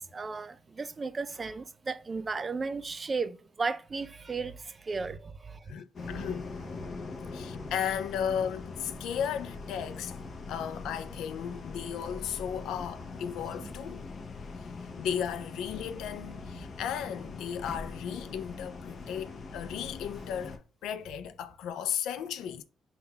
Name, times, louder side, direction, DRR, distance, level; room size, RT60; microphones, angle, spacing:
voice 1, 0.1-5.6 6.0-6.3 13.6-13.7, right 4 dB, 30° right, 0.3 m, -35 dB
voice 2, 5.7-6.5 7.3-10.2 10.5-14.1 15.0-22.6, left 8 dB, 85° left, 0.4 m, -35 dB
sound 1, 6.0-20.6, left 4 dB, 50° left, 0.7 m, -42 dB
3.8 x 2.3 x 4.0 m
cardioid pair, 90°, 0 cm